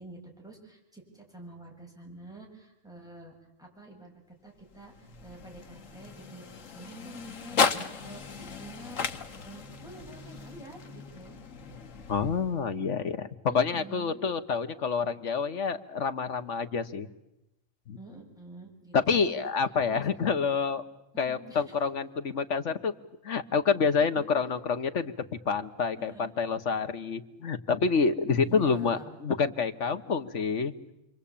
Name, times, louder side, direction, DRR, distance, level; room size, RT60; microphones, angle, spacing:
voice 1, 0.0-11.4 13.5-14.2 18.0-19.5 19.9-20.5 21.1-21.9 24.0-24.3 26.0-26.3 28.4-29.1, right 2 dB, 5° right, -1 dB, 7.4 m, -48 dB
sound 1, 4.6-12.8, left 6 dB, 90° left, 1.7 m, -35 dB
voice 2, 12.1-13.3 13.5-17.1 17.9-18.0 18.9-20.8 21.2-22.9 23.2-25.1 25.5-30.7, left 5 dB, 70° left, 10 dB, 1.6 m, -28 dB
29.0 x 23.5 x 8.7 m, 0.90 s
omnidirectional pair, 1.3 m